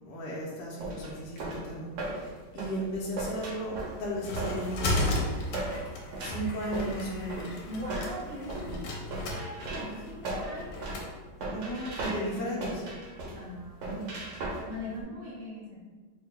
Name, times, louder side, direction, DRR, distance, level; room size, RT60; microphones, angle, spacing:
voice 1, 0.0-5.2 6.2-7.6 11.5-12.8 13.8-14.1, equal, 65° left, -5 dB, 1.2 m, -35 dB
sound 1, 0.8-15.0, right 2 dB, 90° right, 1.7 m, -37 dB
sound 2, 3.7-11.1, left 1 dB, 90° left, 1.5 m, -35 dB
voice 2, 7.7-10.9 12.0-12.6 13.3-14.0 14.7-15.8, left 1 dB, 60° right, -5 dB, 1.4 m, -40 dB
3.8 x 2.2 x 3.3 m, 1.4 s
omnidirectional pair, 2.3 m